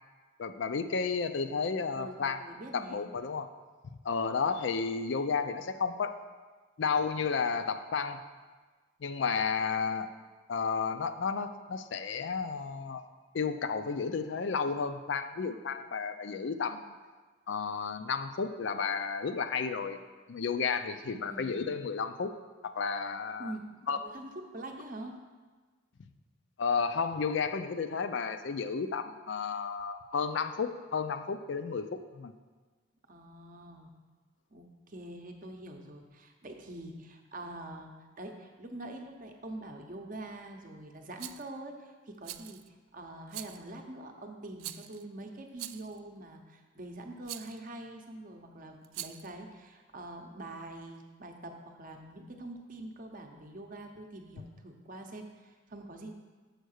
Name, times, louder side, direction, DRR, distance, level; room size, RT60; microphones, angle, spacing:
voice 1, 0.4-2.4 2.7-3.5 4.0-6.1 6.8-8.2 9.0-10.1 10.5-13.0 13.3-16.9 17.5-20.0 20.3-22.3 22.6-23.5 23.9-24.0 26.6-32.3, left 5 dB, 60° left, 10 dB, 0.4 m, -32 dB
voice 2, 1.9-3.0 21.1-21.7 23.4-23.7 24.0-25.2 33.1-33.9 34.5-42.6 42.9-56.1, right 1 dB, 40° right, 4 dB, 0.7 m, -45 dB
Rattle, 41.2-41.5 42.2-42.7 43.3-43.7 44.6-45.0 45.6-46.0 47.2-47.6 48.8-49.3, right 14 dB, 85° right, 0.3 m, -43 dB
6.5 x 4.6 x 6.4 m, 1.4 s
head